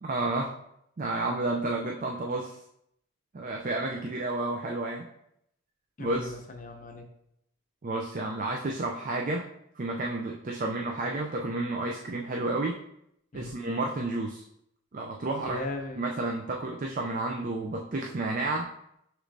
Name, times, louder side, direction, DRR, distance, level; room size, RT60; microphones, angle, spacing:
voice 1, 0.0-0.5 1.0-2.6 3.3-5.0 6.0-6.3 7.8-9.5 9.8-12.8 13.3-14.4 14.9-15.6 16.0-18.7, right 2 dB, 40° right, 1 dB, 0.4 m, -31 dB
voice 2, 6.0-7.1 13.3-13.6 15.4-16.1, left 2 dB, 40° left, 5 dB, 0.5 m, -38 dB
6.5 x 3.1 x 2.6 m, 0.76 s
head